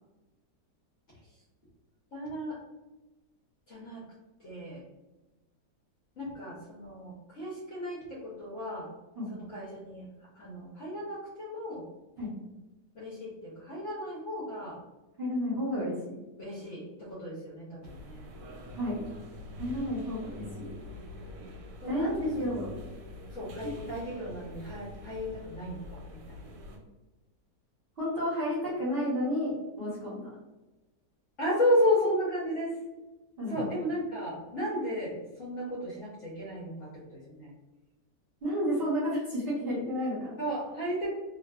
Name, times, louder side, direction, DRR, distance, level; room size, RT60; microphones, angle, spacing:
voice 1, 2.1-2.6 3.7-4.0 4.4-4.8 6.2-8.9 9.3-10.1 10.3-11.8 12.9-14.8 16.4-18.2 21.8-22.6 23.3-26.4 31.4-32.8 33.5-37.5 40.4-41.1, equal, 60° left, -6 dB, 0.8 m, -33 dB
voice 2, 15.2-16.2 18.7-19.0 19.6-20.8 21.8-22.7 28.0-30.3 33.4-33.7 38.4-40.3, equal, 50° right, -8 dB, 0.8 m, -31 dB
sound 1, 17.8-26.8, left 1 dB, 85° right, 1.2 m, -45 dB
2.6 x 2.4 x 2.2 m, 1.1 s
omnidirectional pair, 1.8 m